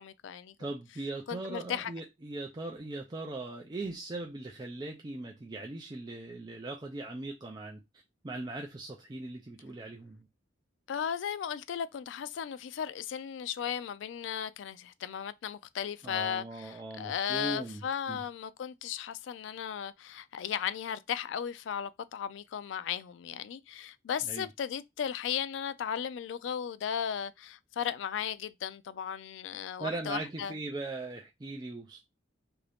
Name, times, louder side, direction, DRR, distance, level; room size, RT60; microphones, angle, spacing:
voice 1, 0.0-0.5 1.3-1.9 10.9-30.5, left 8 dB, 70° left, 0.3 m, -36 dB
voice 2, 0.6-7.8 8.2-10.3 16.0-17.8 18.1-18.2 24.3-24.5 29.8-32.1, right 2 dB, 20° right, 0.4 m, -39 dB
2.8 x 2.6 x 3.4 m
head